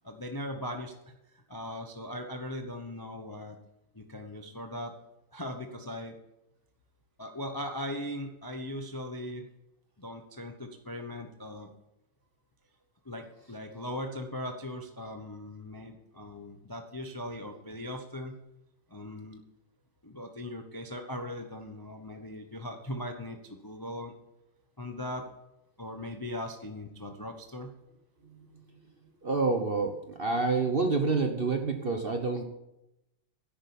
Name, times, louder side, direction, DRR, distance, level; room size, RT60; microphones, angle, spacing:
voice 1, 0.0-3.6 3.9-4.9 5.3-6.2 7.2-9.5 10.0-11.7 13.0-18.4 18.9-19.4 20.0-24.1 24.8-25.2 25.8-27.7, left 1 dB, 25° left, 4 dB, 0.4 m, -39 dB
voice 2, 29.2-32.4, right 3 dB, 35° right, 4 dB, 0.9 m, -28 dB
10.5 x 8.7 x 7.2 m, 0.89 s
omnidirectional pair, 2.3 m